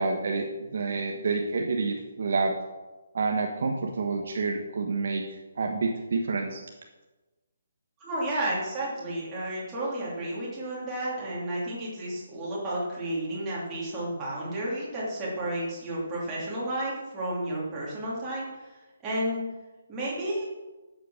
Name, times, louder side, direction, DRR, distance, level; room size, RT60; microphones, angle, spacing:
voice 1, 0.0-2.5 3.1-6.6, right 4 dB, 45° right, 2 dB, 1.2 m, -28 dB
voice 2, 8.0-19.4 19.9-20.4, right 1 dB, 10° right, -7 dB, 3.1 m, -32 dB
12.0 x 7.9 x 6.4 m, 1.1 s
hypercardioid pair, 180°, 0 cm